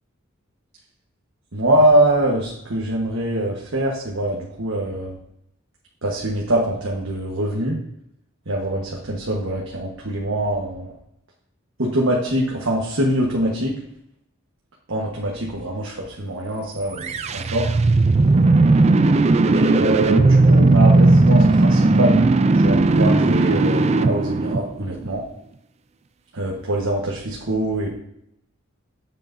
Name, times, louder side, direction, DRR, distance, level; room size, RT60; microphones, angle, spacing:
voice 1, 1.5-5.2 6.0-7.8 8.5-10.9 11.8-13.8 14.9-17.7 19.5-25.2 26.3-28.0, right 1 dB, 70° right, -3 dB, 1.3 m, -23 dB
sound 1, 16.9-25.1, right 2 dB, 30° right, 0.3 m, -16 dB
9.0 x 7.5 x 2.7 m, 0.77 s
head